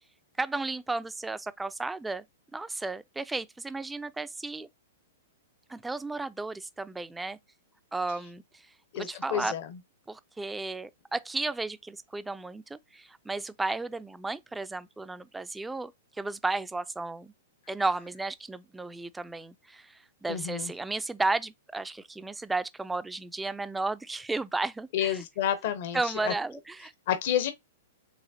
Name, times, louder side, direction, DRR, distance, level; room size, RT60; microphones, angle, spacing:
voice 1, 0.4-2.2 2.5-4.7 5.7-7.4 7.9-8.4 9.0-9.5 10.1-15.9 16.2-17.3 17.7-25.2 25.9-26.9, right 3 dB, 5° right, 0.4 m, -33 dB
voice 2, 8.9-9.8 20.3-20.7 24.9-26.3 27.1-27.5, left 10 dB, 55° left, 0.9 m, -30 dB
4.9 x 3.2 x 2.7 m
hypercardioid pair, 130°, 0 cm